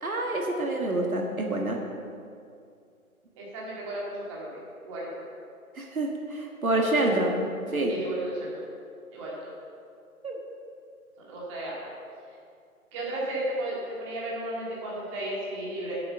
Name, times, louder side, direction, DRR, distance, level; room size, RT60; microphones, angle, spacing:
voice 1, 0.0-1.8 5.8-7.5 7.7-7.9 10.2-10.4, right 2 dB, 70° right, 1 dB, 1.7 m, -27 dB
voice 2, 3.4-5.1 6.8-7.1 7.9-8.6 9.1-9.5 11.2-11.9 12.9-16.0, right 1 dB, 20° right, -5 dB, 2.5 m, -34 dB
12.5 x 8.0 x 5.6 m, 2.3 s
figure-of-eight pair, 145°, 43 cm